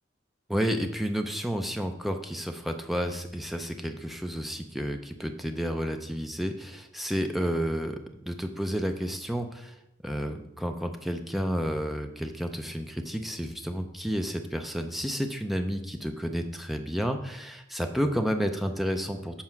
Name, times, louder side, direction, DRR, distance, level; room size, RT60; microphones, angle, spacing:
voice 1, 0.5-9.8 10.0-19.4, equal, ahead, 5 dB, 0.5 m, -31 dB
7.6 x 4.3 x 5.9 m, 0.83 s
head